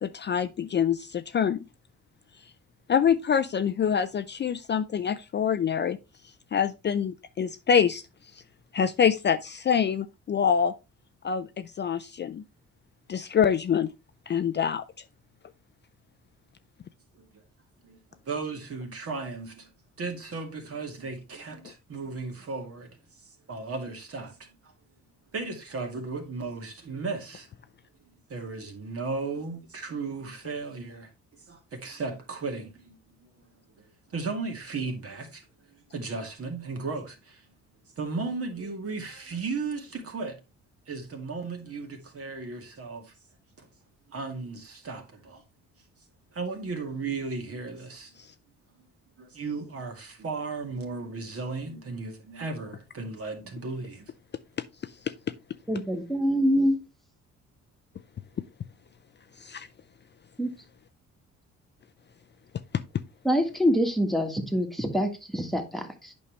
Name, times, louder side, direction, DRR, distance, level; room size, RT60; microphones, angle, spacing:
voice 1, 0.0-1.7 2.9-6.0 6.5-8.0 8.7-10.7 11.2-12.4 13.1-13.9 14.3-14.8 59.4-59.7, left 7 dB, 35° left, 0.5 m, -25 dB
voice 2, 18.2-19.7 20.0-24.5 25.3-27.5 28.3-33.3 33.8-37.5 38.0-40.4 40.9-43.1 43.6-43.7 44.1-45.4 46.3-48.2 49.2-54.1, right 4 dB, 50° right, 2.1 m, -35 dB
voice 3, 55.7-56.8 60.4-60.5 63.2-66.1, equal, ahead, 1.5 m, -25 dB
8.4 x 5.4 x 3.2 m
cardioid pair, 90°, 30 cm